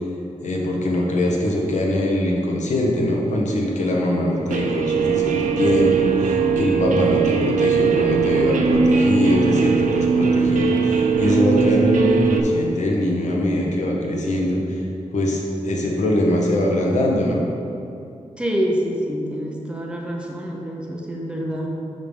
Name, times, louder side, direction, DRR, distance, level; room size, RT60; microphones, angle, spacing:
voice 1, 0.4-14.8 15.1-17.4, left 1 dB, 70° left, -2 dB, 1.1 m, -22 dB
Guitar, 4.5-12.4, right 5 dB, 90° right, 0.5 m, -19 dB
voice 2, 18.4-21.7, equal, 10° right, -2 dB, 0.7 m, -26 dB
5.7 x 5.1 x 5.3 m, 2.6 s
wide cardioid pair, 180°, 13 cm